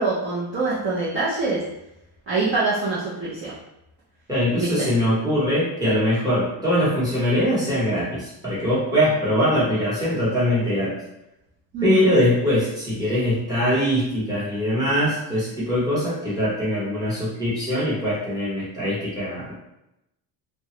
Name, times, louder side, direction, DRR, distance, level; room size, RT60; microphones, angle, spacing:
voice 1, 0.0-1.6 2.3-3.6 4.6-4.9 11.7-12.1, right 3 dB, 30° right, -9 dB, 0.6 m, -24 dB
voice 2, 4.3-10.9 11.8-19.5, equal, 10° right, -9 dB, 0.9 m, -22 dB
2.9 x 2.2 x 2.9 m, 0.87 s
cardioid pair, 170°, 44 cm